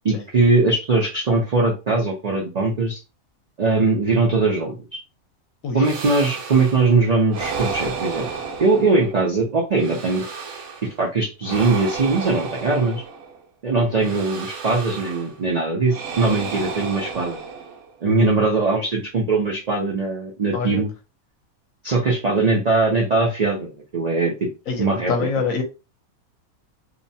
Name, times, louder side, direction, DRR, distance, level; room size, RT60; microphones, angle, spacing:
voice 1, 0.0-3.0 3.6-4.8 5.7-8.3 8.6-10.2 11.0-13.0 13.6-17.4 18.0-20.9 21.8-24.3 24.8-25.1, right 3 dB, 65° right, -1 dB, 0.4 m, -20 dB
sound 1, 5.8-6.9 7.3-9.3 9.7-11.0 11.4-13.4 14.0-15.4 15.9-18.0, right 5 dB, 85° right, 1.1 m, -32 dB
voice 2, 24.7-25.6, left 5 dB, 75° left, 4 dB, 1.0 m, -25 dB
2.8 x 2.1 x 2.6 m, 0.29 s
omnidirectional pair, 1.5 m